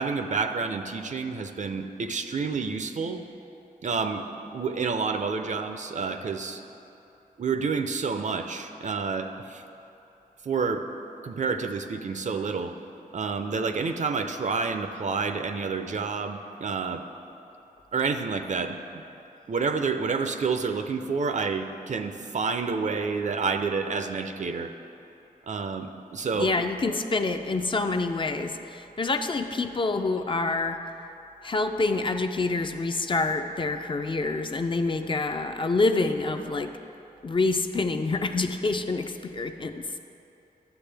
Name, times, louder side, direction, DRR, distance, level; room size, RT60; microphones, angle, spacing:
voice 1, 0.0-3.2 3.8-4.3 4.5-6.6 7.4-9.6 10.4-10.8 11.2-12.7 13.1-17.0 17.9-19.0 19.5-24.7 25.5-26.5, right 5 dB, 50° right, 7 dB, 0.5 m, -29 dB
voice 2, 26.3-30.8 31.4-36.8 37.2-39.9, left 3 dB, 35° left, 6 dB, 0.4 m, -27 dB
12.0 x 7.6 x 3.4 m, 2.9 s
wide cardioid pair, 145°, 15 cm